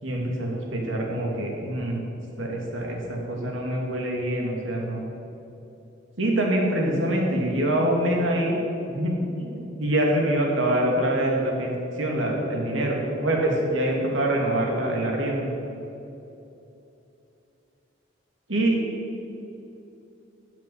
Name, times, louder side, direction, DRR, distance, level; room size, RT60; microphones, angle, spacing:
voice 1, 0.0-2.0 2.4-5.0 6.2-8.6 8.9-15.5 18.5-18.8, right 1 dB, 85° right, 0 dB, 2.6 m, -25 dB
13.5 x 7.5 x 7.8 m, 2.8 s
head